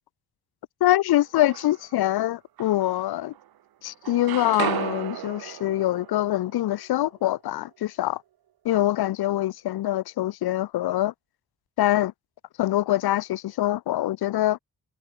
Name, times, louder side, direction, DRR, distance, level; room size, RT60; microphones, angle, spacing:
voice 1, 0.8-3.3 3.8-8.2 8.6-11.1 11.8-12.1 12.6-14.6, left 14 dB, 80° left, 0.5 m, -24 dB
sound 1, 1.1-2.0 2.6-3.6 3.9-7.8, right 12 dB, 70° right, 0.8 m, -35 dB
cardioid pair, 90°, 38 cm